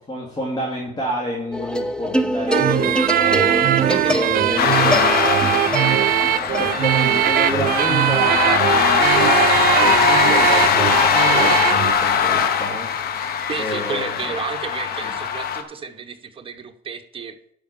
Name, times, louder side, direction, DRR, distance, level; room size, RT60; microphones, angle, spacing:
voice 1, 0.1-12.9 13.6-14.4 15.0-15.1, equal, 25° left, -4 dB, 2.7 m, -29 dB
sound 1, 1.5-8.9, equal, 5° left, 0.7 m, -26 dB
sound 2, 2.5-11.9, right 13 dB, 60° right, 0.5 m, -20 dB
voice 2, 3.9-4.3 13.5-17.5, right 6 dB, 30° right, 6 dB, 1.1 m, -32 dB
sound 3, 4.6-15.6, left 7 dB, 65° left, 1.2 m, -20 dB
10.5 x 5.2 x 7.0 m, 0.72 s
cardioid pair, 110°, 17 cm